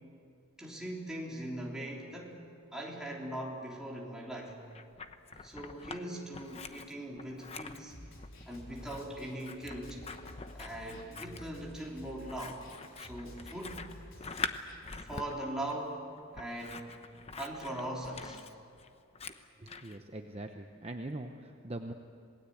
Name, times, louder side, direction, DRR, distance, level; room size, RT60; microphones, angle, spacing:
voice 1, 0.6-2.4 2.7-4.5 5.4-8.0 8.5-10.0 10.5-12.6 13.0-13.8 15.0-16.9 17.4-18.4, right 1 dB, 5° right, -3 dB, 3.4 m, -40 dB
Scissors, 4.5-6.0 6.3-20.0, left 4 dB, 30° left, 0.9 m, -45 dB
Snare drum, 7.9-14.7, equal, 70° left, 4.5 m, -51 dB
voice 2, 19.6-21.9, right 1 dB, 30° right, 5 dB, 0.8 m, -42 dB
27.0 x 19.5 x 8.6 m, 2.5 s
head